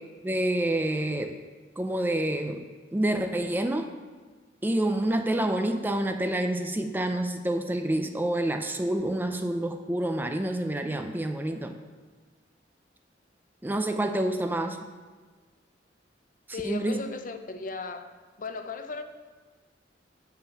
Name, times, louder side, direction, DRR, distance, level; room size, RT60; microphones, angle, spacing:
voice 1, 0.2-1.4 1.8-2.7 2.9-3.9 4.6-11.8 13.6-14.9 16.6-17.0, right 1 dB, 10° right, 6 dB, 0.4 m, -28 dB
voice 2, 16.5-18.1 18.4-19.0, left 4 dB, 45° left, 8 dB, 0.6 m, -36 dB
7.2 x 5.6 x 7.0 m, 1.4 s
head